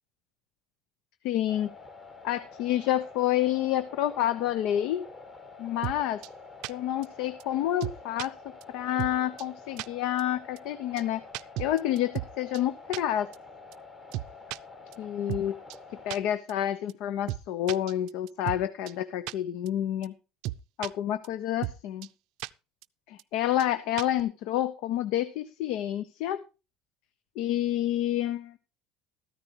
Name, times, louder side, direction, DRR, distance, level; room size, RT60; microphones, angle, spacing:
voice 1, 1.2-1.7 2.2-5.0 5.6-6.2 6.7-8.3 8.7-11.2 11.6-13.3 15.0-15.6 16.0-20.1 20.8-22.1 23.1-26.4 27.4-28.6, left 12 dB, 60° left, 14 dB, 0.8 m, -29 dB
sound 1, 1.5-16.2, left 3 dB, 20° left, 1.9 m, -48 dB
sound 2, 5.8-6.0 6.2-6.3 6.6-6.7 7.0-7.1 7.4-7.5 7.8-8.3 8.6-8.7 9.0-9.1 9.4-9.5 9.8-9.9 10.2-10.3 10.6-10.7 11.0-11.1 11.3-12.3 12.5-12.6 12.9-13.0 13.3-13.4 13.7-13.8 14.1-14.6 14.9-15.0 15.3-15.4 15.7-15.8 16.1-16.2 16.5-16.6 16.9-17.0 17.3-17.4 17.7-18.6 18.9-19.0 19.3-19.4 19.7-19.8 20.0-20.1 20.4-20.9 21.2-21.3 21.6-21.8 22.0-22.1 22.4-22.5 22.8-22.9 23.2-23.3 23.6-23.7 24.0-24.2, right 16 dB, 60° right, 0.5 m, -34 dB
14.0 x 13.5 x 3.0 m, 0.30 s
cardioid pair, 175°, 0 cm